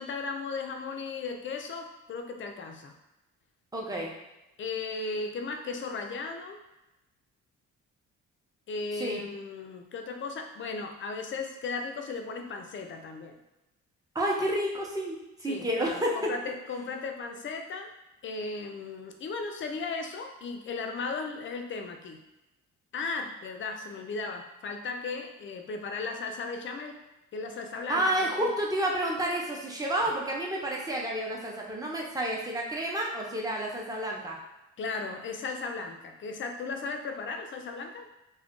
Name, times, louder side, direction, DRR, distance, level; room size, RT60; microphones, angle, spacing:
voice 1, 0.0-2.9 4.6-6.6 8.7-13.4 15.5-17.9 18.2-22.2 22.9-27.0 27.3-28.5 34.8-38.1, left 4 dB, 40° left, 5 dB, 0.5 m, -36 dB
voice 2, 3.7-4.1 8.9-9.2 14.1-16.3 27.9-34.4, right 1 dB, 10° right, -2 dB, 0.6 m, -30 dB
2.4 x 2.2 x 3.6 m, 0.95 s
cardioid pair, 90°, 30 cm